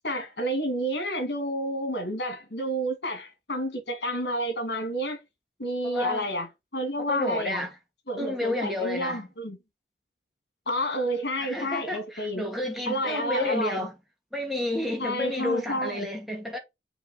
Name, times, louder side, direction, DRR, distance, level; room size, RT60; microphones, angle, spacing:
voice 1, 0.0-5.2 5.6-7.6 8.1-9.6 10.7-12.5 12.9-13.9 15.0-16.1, equal, 70° left, 2.7 m, -30 dB
voice 2, 5.8-6.2 7.1-7.7 8.2-9.3 11.4-13.9 14.3-16.6, left 1 dB, ahead, 2.1 m, -31 dB
7.0 x 3.8 x 3.9 m
head